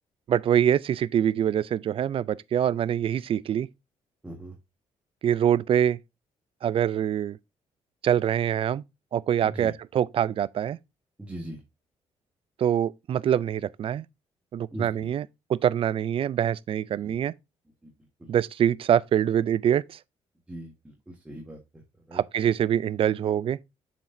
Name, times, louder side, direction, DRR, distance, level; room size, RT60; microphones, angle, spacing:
voice 1, 0.3-3.7 5.2-6.0 6.6-7.4 8.0-8.8 9.1-10.8 12.6-14.0 14.5-17.3 18.3-20.0 22.1-23.6, right 9 dB, 50° right, 0.4 m, -24 dB
voice 2, 4.2-4.6 9.4-9.7 11.2-11.6 14.7-15.1 17.0-17.1 17.8-17.9 18.2-18.3 20.5-21.8 22.1-22.2, right 1 dB, 10° right, 1.5 m, -40 dB
7.3 x 5.8 x 2.7 m
cardioid pair, 105°, 12 cm